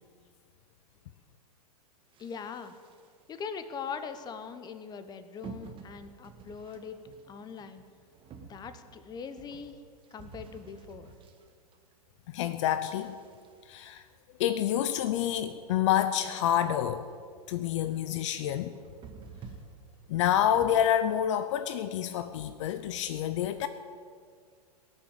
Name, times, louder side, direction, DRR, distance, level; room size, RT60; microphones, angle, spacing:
sound 1, 2.1-3.4 3.9-4.2 5.4-12.2 12.6-14.8 15.3-15.4 15.5-15.6 16.1-16.2 16.5-16.7 17.0-17.4 17.8-18.0 18.6-20.9, right 5 dB, 25° right, 1.5 m, -50 dB
voice 1, 2.2-2.7 3.3-7.8 8.4-9.8 10.1-11.1, left 6 dB, 20° left, 1.0 m, -41 dB
voice 2, 12.3-13.2 13.7-14.1 14.4-17.1 17.5-18.8 20.1-23.7, left 10 dB, 50° left, 0.7 m, -28 dB
17.5 x 7.0 x 9.0 m
figure-of-eight pair, 105°, 20 cm